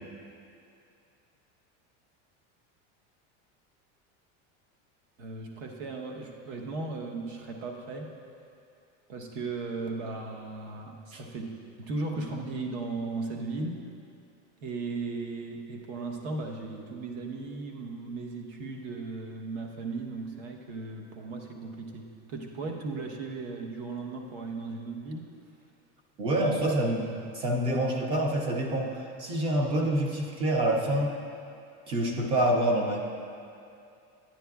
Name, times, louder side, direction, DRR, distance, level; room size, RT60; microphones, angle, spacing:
voice 1, 5.2-8.1 9.1-13.8 14.6-25.2, right 3 dB, 65° right, 2 dB, 1.0 m, -36 dB
voice 2, 26.2-31.1 31.9-33.0, right 1 dB, 15° right, 1 dB, 0.3 m, -27 dB
10.5 x 9.8 x 2.3 m, 2.6 s
cardioid pair, 175°, 35 cm